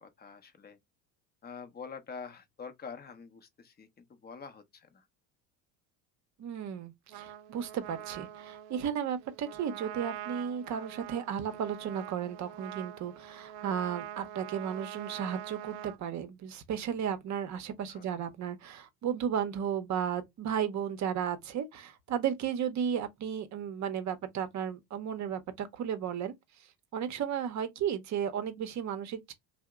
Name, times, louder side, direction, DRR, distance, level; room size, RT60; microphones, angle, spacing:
voice 1, 0.0-0.8 1.4-5.0 17.9-18.1, left 5 dB, 20° left, 0.6 m, -46 dB
voice 2, 6.4-26.3 26.9-29.3, right 8 dB, 35° right, 0.7 m, -34 dB
Trumpet, 7.1-16.0, right 11 dB, 70° right, 0.5 m, -44 dB
2.7 x 2.1 x 3.4 m
hypercardioid pair, 85°, 49 cm